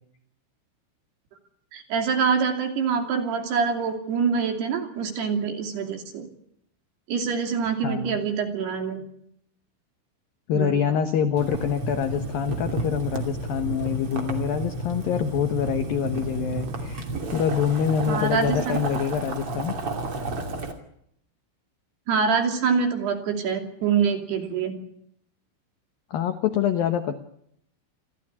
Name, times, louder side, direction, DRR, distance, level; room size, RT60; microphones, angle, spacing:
voice 1, 1.7-6.3 7.1-9.0 10.5-10.8 18.1-18.8 22.1-24.7, right 6 dB, 55° right, 4 dB, 4.5 m, -25 dB
voice 2, 7.8-8.2 10.5-17.1 17.3-19.7 26.1-27.1, left 8 dB, 80° left, 8 dB, 2.0 m, -25 dB
Boiling, 11.4-20.7, right 2 dB, 35° right, 2.7 m, -32 dB
28.0 x 14.0 x 9.9 m, 0.73 s
omnidirectional pair, 5.9 m